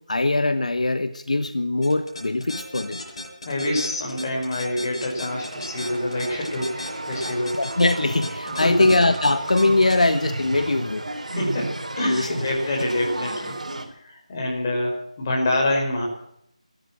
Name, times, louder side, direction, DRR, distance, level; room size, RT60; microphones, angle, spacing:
voice 1, 0.1-3.0 7.1-7.2 7.5-11.0 12.0-12.4, left 2 dB, 75° left, 11 dB, 1.2 m, -21 dB
sound 1, 1.8-9.9, left 1 dB, 50° left, 7.8 m, -35 dB
voice 2, 3.4-7.6 8.5-8.9 11.4-13.6 14.0-16.0, left 1 dB, 30° left, 0 dB, 5.3 m, -26 dB
sound 2, 5.3-13.9, right 1 dB, 80° right, 3.7 m, -33 dB
15.0 x 13.0 x 7.6 m, 0.75 s
figure-of-eight pair, 165°, 4 cm